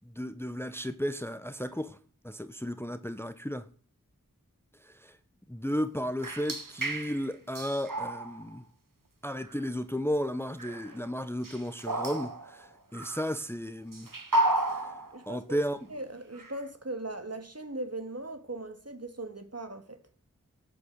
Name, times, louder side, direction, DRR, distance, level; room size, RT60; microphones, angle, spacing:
voice 1, 0.0-2.0 2.2-3.7 4.8-5.2 5.5-8.6 9.2-14.1 14.7-14.9 15.3-15.8, equal, 5° left, 0.8 m, -34 dB
sound 1, 6.2-7.3 7.5-8.6 9.4-9.6 10.6-11.0 11.4-13.4 13.9-15.3 15.8-15.9 16.3-16.6, right 1 dB, 70° right, 1.7 m, -32 dB
voice 2, 15.1-15.6 15.9-20.0, right 2 dB, 45° right, 2.1 m, -39 dB
12.0 x 8.7 x 8.0 m
wide cardioid pair, 40°, 33 cm